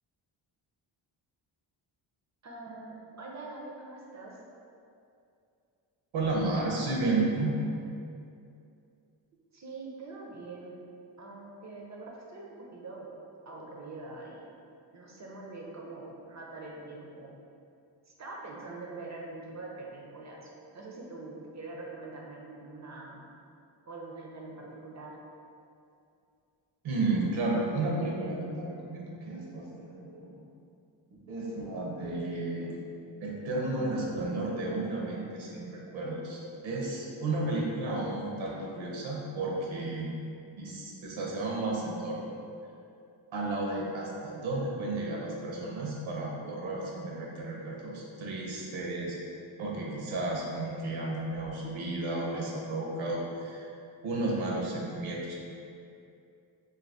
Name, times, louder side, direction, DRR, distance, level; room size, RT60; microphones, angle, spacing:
voice 1, 2.4-4.3 9.5-10.8 11.2-13.1 13.5-14.5 14.9-17.3 18.2-23.2 23.9-25.2, right 3 dB, 35° right, -3 dB, 0.5 m, -44 dB
voice 2, 6.1-7.6 26.8-30.4 31.1-32.8 33.2-35.7 35.9-40.1 40.6-42.4 43.3-49.2 49.6-53.7 54.0-55.4, right 2 dB, 70° right, -3 dB, 0.7 m, -32 dB
2.6 x 2.2 x 3.3 m, 2.5 s
cardioid pair, 60°, 49 cm